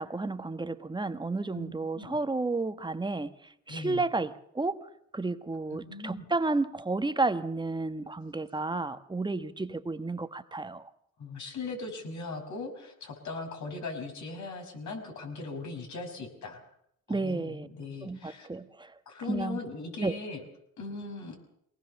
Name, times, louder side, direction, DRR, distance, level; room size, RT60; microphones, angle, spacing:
voice 1, 0.0-3.3 3.7-4.9 5.1-10.9 17.1-17.7 18.0-18.9 19.3-19.6 20.0-20.2, right 3 dB, 15° right, 1.2 m, -32 dB
voice 2, 1.5-2.2 3.7-4.0 5.7-6.2 11.2-16.6 17.1-18.5 19.1-20.4 20.8-21.4, left 3 dB, 70° left, 6.0 m, -39 dB
23.0 x 18.5 x 6.9 m
cardioid pair, 90°, 30 cm